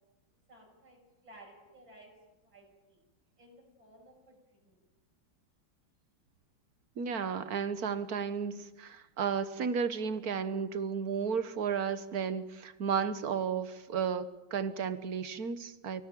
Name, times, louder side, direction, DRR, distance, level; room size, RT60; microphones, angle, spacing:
voice 1, 0.5-2.1 2.4-3.0 3.4-4.8, right 1 dB, 70° right, -1 dB, 7.8 m, -57 dB
voice 2, 7.0-16.0, right 6 dB, 50° right, 12 dB, 1.6 m, -33 dB
25.0 x 17.5 x 9.1 m, 1.1 s
omnidirectional pair, 2.2 m